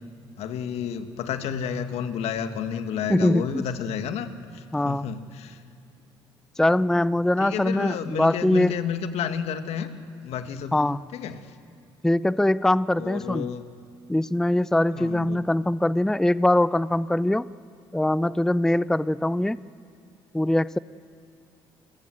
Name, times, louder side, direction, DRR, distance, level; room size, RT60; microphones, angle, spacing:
voice 1, 0.4-5.6 7.4-9.9 10.2-10.8 11.1-11.5 13.0-13.6 14.9-15.4, left 8 dB, 70° left, 8 dB, 1.8 m, -31 dB
voice 2, 3.1-3.6 4.7-5.1 6.6-8.7 10.7-11.0 12.0-13.5 14.1-17.5 17.9-19.6 20.3-20.8, left 1 dB, 5° left, 18 dB, 0.5 m, -22 dB
28.0 x 22.0 x 7.9 m, 2.5 s
hypercardioid pair, 60°, 11 cm